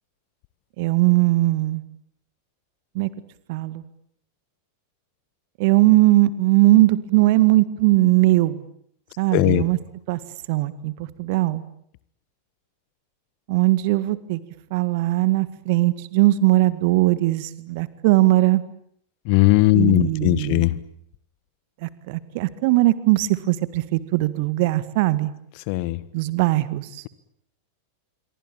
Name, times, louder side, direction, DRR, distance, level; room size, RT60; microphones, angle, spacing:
voice 1, 0.8-1.8 2.9-3.1 3.5-3.8 5.6-8.7 9.2-9.8 10.1-10.2 10.5-11.6 13.5-14.4 14.7-18.6 19.7-20.7 21.8-25.3 26.1-27.0, right 18 dB, 50° right, 15 dB, 2.0 m, -19 dB
voice 2, 9.3-9.6 19.2-20.8 25.7-26.0, left 19 dB, 45° left, 18 dB, 1.6 m, -18 dB
27.5 x 23.5 x 8.9 m, 0.68 s
figure-of-eight pair, 90°, 0 cm